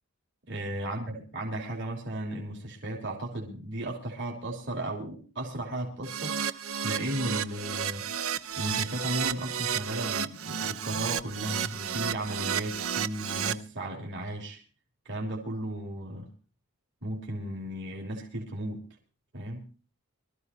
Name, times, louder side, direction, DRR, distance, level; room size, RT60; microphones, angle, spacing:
voice 1, 0.5-8.1 8.5-14.6 15.0-16.3 17.0-18.8 19.3-19.7, right 1 dB, 55° right, -1 dB, 3.4 m, -35 dB
Keyboard (musical), 6.0-13.5, right 8 dB, 70° right, 0.8 m, -32 dB
24.0 x 14.0 x 2.9 m, 0.37 s
head